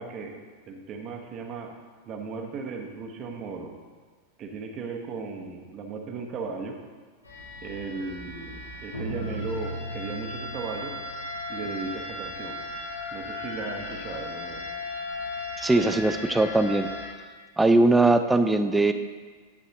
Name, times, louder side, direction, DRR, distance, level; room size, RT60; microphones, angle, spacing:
voice 1, 0.0-1.7 2.0-3.8 4.4-6.8 7.6-11.0 11.5-12.6 13.1-14.7, right 4 dB, 30° right, 4 dB, 1.1 m, -36 dB
sound 1, 7.2-17.1, left 1 dB, 80° left, 1.9 m, -36 dB
voice 2, 15.6-16.9 17.6-18.9, right 2 dB, 10° right, 9 dB, 0.5 m, -20 dB
11.0 x 8.2 x 2.9 m, 1.5 s
figure-of-eight pair, 90°, 0 cm